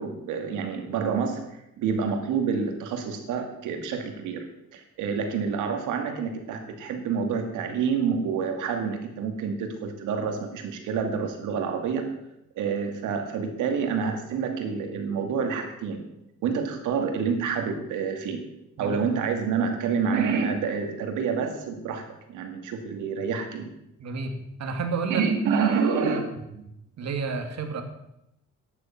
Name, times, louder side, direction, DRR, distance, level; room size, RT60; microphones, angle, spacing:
voice 1, 0.0-1.4 1.8-4.4 4.7-12.1 12.6-16.0 16.4-18.4 18.8-23.7 25.1-26.2, right 6 dB, 90° right, 5 dB, 2.3 m, -28 dB
voice 2, 24.0-25.2 26.0-26.2 27.0-27.8, right 4 dB, 60° right, 6 dB, 2.4 m, -31 dB
12.0 x 10.5 x 5.9 m, 0.83 s
cardioid pair, 90°, 30 cm